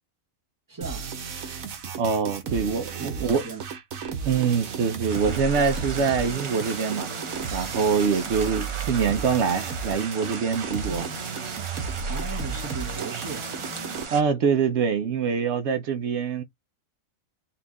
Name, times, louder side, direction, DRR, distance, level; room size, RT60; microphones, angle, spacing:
voice 1, 0.7-1.1 2.4-3.6 12.1-13.5, right 4 dB, 20° right, 0.7 m, -38 dB
sound 1, 0.8-14.0, right 5 dB, 80° right, 1.3 m, -33 dB
voice 2, 2.0-3.4 4.2-7.1 7.5-11.1 14.1-16.4, right 6 dB, 65° right, 0.9 m, -24 dB
sound 2, 5.1-14.2, right 4 dB, 45° right, 0.3 m, -37 dB
4.2 x 2.4 x 4.0 m
omnidirectional pair, 1.4 m